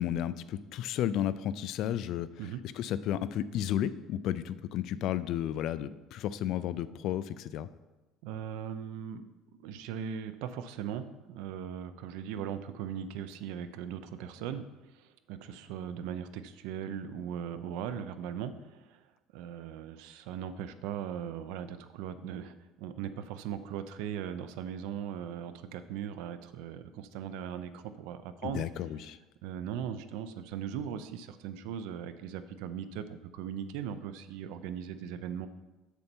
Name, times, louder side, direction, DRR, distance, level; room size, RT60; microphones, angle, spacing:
voice 1, 0.0-2.3 2.8-7.7 28.4-29.2, left 11 dB, 50° left, 15 dB, 0.3 m, -32 dB
voice 2, 8.2-9.3 9.6-19.1 19.3-28.6 29.4-35.5, right 8 dB, 90° right, 12 dB, 0.5 m, -39 dB
6.9 x 6.6 x 4.5 m, 1.1 s
cardioid pair, 170°, 0 cm